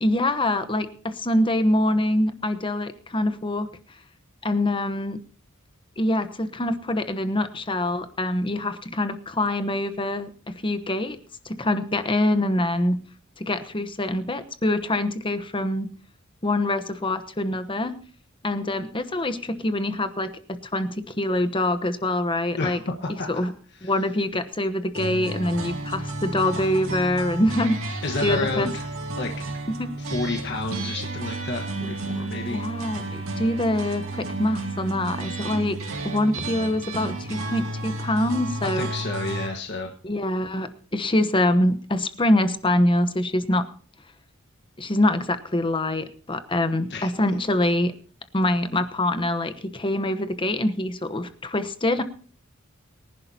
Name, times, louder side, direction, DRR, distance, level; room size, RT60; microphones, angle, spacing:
voice 1, 0.0-3.7 4.4-5.2 6.0-11.2 11.4-13.0 13.4-15.9 16.4-18.0 18.4-22.8 23.1-23.5 23.8-28.7 29.8-29.9 32.5-35.8 36.0-38.9 40.0-43.7 44.8-47.9 48.3-52.0, left 1 dB, 25° left, 10 dB, 1.0 m, -25 dB
voice 2, 22.5-23.5 23.8-23.9 28.0-28.9 29.2-29.3 30.0-32.6 38.6-39.9 46.9-47.1, left 2 dB, 55° left, 2 dB, 1.4 m, -30 dB
sound 1, 24.9-39.5, right 2 dB, 70° right, 2.4 m, -32 dB
23.5 x 11.0 x 2.8 m, 0.42 s
head